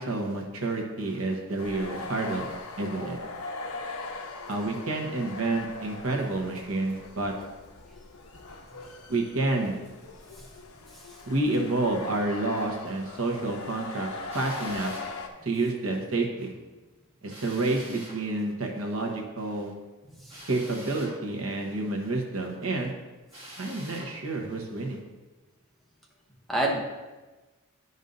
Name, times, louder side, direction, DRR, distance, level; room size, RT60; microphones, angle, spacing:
voice 1, 0.0-2.5 2.8-3.2 4.5-7.3 9.1-9.8 11.3-14.1 14.3-14.9 15.4-16.5 17.2-19.7 20.5-22.9 23.6-25.0, right 2 dB, 65° right, 1 dB, 1.1 m, -29 dB
sound 1, 1.6-15.3, left 3 dB, 75° left, 0.8 m, -41 dB
Drill, 14.3-15.1 17.3-18.2 20.3-21.2 23.3-24.1, right 1 dB, 25° right, 2.2 m, -45 dB
voice 2, 26.5-26.8, right 1 dB, ahead, -1 dB, 0.7 m, -29 dB
10.5 x 5.3 x 2.6 m, 1.2 s
head